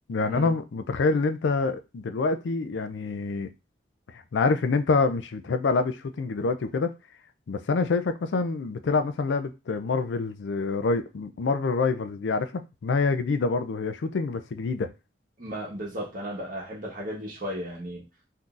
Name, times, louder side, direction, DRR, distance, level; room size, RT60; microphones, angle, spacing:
voice 1, 0.1-3.5 4.3-6.9 7.5-14.9, left 4 dB, 80° left, 0.4 m, -26 dB
voice 2, 15.4-18.0, equal, 50° right, 1.3 m, -35 dB
3.7 x 2.7 x 2.4 m
head